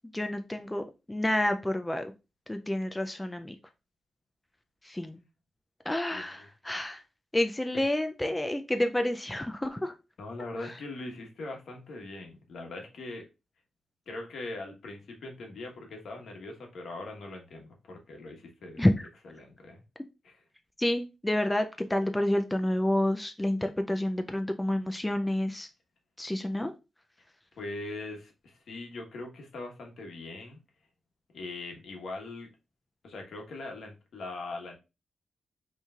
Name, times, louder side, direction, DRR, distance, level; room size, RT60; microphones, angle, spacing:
voice 1, 0.1-2.1 2.5-3.6 4.9-5.2 5.9-7.0 7.3-9.9 18.8-18.9 20.8-25.7 26.2-26.7, left 1 dB, 10° left, 7 dB, 0.3 m, -29 dB
voice 2, 6.1-6.5 7.7-7.8 10.2-13.3 14.1-18.8 19.2-19.8 20.2-20.4 27.6-30.6 31.3-32.5 33.0-34.8, left 2 dB, 70° left, 2 dB, 1.2 m, -41 dB
5.5 x 3.1 x 2.3 m, 0.27 s
wide cardioid pair, 165°, 0 cm